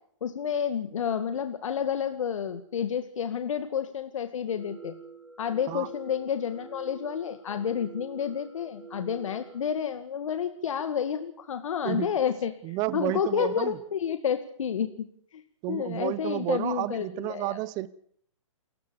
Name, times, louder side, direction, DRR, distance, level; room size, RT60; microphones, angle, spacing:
voice 1, 0.2-4.9 5.4-12.5 12.9-14.9 15.3-15.4 15.7-17.6, left 8 dB, 65° left, 9 dB, 2.2 m, -30 dB
sound 1, 4.5-9.6, right 5 dB, 5° right, 3.3 m, -48 dB
voice 2, 12.6-13.8 15.6-17.9, right 17 dB, 25° right, 19 dB, 1.0 m, -31 dB
29.0 x 14.5 x 7.1 m, 0.63 s
hypercardioid pair, 155°, 18 cm